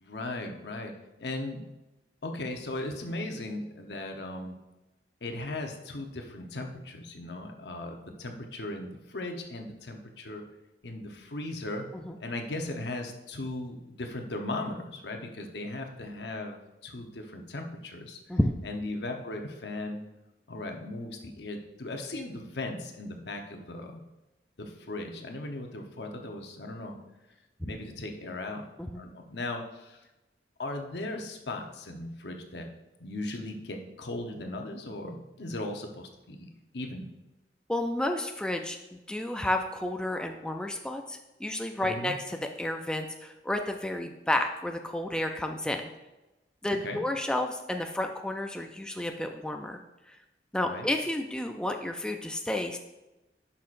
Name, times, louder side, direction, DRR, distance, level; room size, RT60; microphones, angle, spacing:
voice 1, 0.0-1.6 2.2-4.5 5.2-10.4 10.8-11.9 12.2-16.6 16.8-20.0 20.5-24.0 24.6-27.0 27.6-28.7 28.9-30.0 30.6-32.7 33.0-37.1 41.8-42.1 46.8-47.0 50.6-50.9, left 2 dB, 70° left, 3 dB, 0.9 m, -37 dB
voice 2, 37.7-45.8 46.6-49.8 50.1-50.2 50.5-52.8, left 1 dB, 5° left, 4 dB, 0.3 m, -31 dB
10.5 x 5.7 x 2.5 m, 1.0 s
head